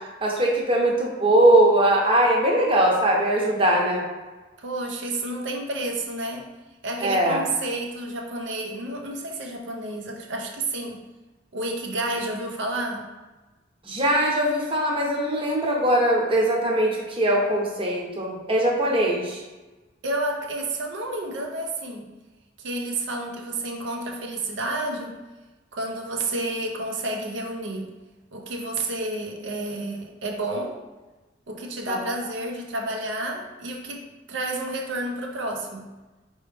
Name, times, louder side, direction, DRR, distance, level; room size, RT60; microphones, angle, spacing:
voice 1, 0.2-4.0 7.0-7.4 13.8-19.4 31.9-32.0, right 1 dB, 30° right, -2 dB, 0.8 m, -21 dB
voice 2, 4.6-6.5 6.8-11.0 11.5-13.1 20.0-22.1 22.6-25.1 25.7-27.9 28.3-30.7 31.5-34.0 34.3-35.9, right 2 dB, 70° right, 2 dB, 0.6 m, -30 dB
4.2 x 3.0 x 3.4 m, 1.2 s
head